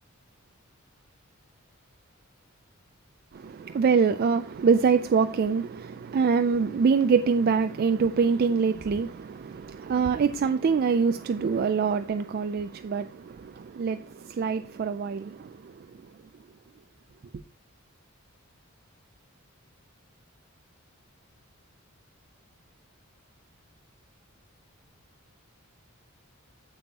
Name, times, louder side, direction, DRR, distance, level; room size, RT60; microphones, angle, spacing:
voice 1, 3.3-15.9, right 5 dB, 45° right, 0.3 m, -25 dB
8.9 x 7.0 x 2.9 m
head